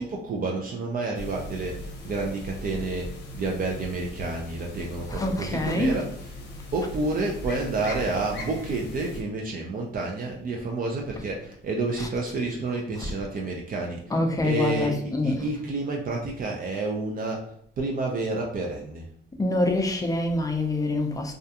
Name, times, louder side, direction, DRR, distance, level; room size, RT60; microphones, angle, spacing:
voice 1, 0.0-6.4 6.7-19.1, right 3 dB, 45° right, 0.4 m, -30 dB
sound 1, 1.1-9.2, left 1 dB, 60° left, 0.6 m, -39 dB
voice 2, 5.1-6.0 12.0-12.1 12.7-13.1 14.1-15.5 19.4-21.3, left 2 dB, 15° left, 0.4 m, -26 dB
2.4 x 2.2 x 2.7 m
cardioid pair, 90°, 20 cm